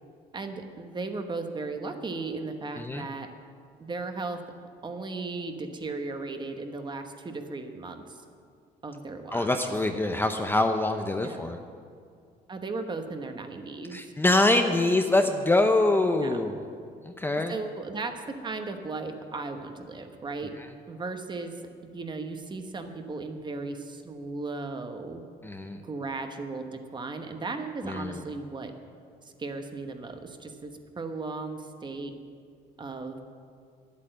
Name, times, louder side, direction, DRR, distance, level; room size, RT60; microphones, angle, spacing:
voice 1, 0.3-3.3 3.8-4.4 4.8-8.2 8.8-9.6 11.2-11.4 12.5-14.1 16.1-16.4 17.5-20.5 20.9-21.6 21.9-25.2 25.8-26.7 26.9-28.7 29.2-32.1 32.8-33.2, right 3 dB, 25° right, 6 dB, 1.0 m, -36 dB
voice 2, 9.3-11.6 13.9-16.6 17.0-17.5 25.4-25.8 27.9-28.2, left 2 dB, 15° left, 5 dB, 0.6 m, -24 dB
10.0 x 8.4 x 7.8 m, 2.2 s
cardioid pair, 110°, 17 cm